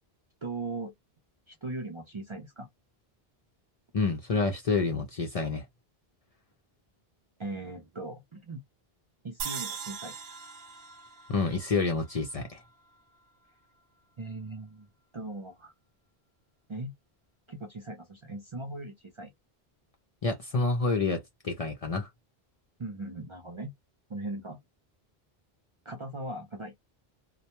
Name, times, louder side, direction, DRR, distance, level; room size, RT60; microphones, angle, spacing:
voice 1, 0.4-0.9 1.5-2.7 7.4-8.6 9.2-10.2 14.2-14.9 15.1-15.7 16.7-16.9 17.5-19.3 22.8-23.7 24.1-24.6 25.9-26.7, right 2 dB, 40° right, 0.4 m, -39 dB
voice 2, 3.9-5.6 11.3-12.6 20.2-22.1, left 4 dB, 50° left, 0.5 m, -28 dB
sound 1, 9.4-12.7, right 7 dB, 75° right, 0.8 m, -40 dB
2.1 x 2.1 x 2.9 m
omnidirectional pair, 1.0 m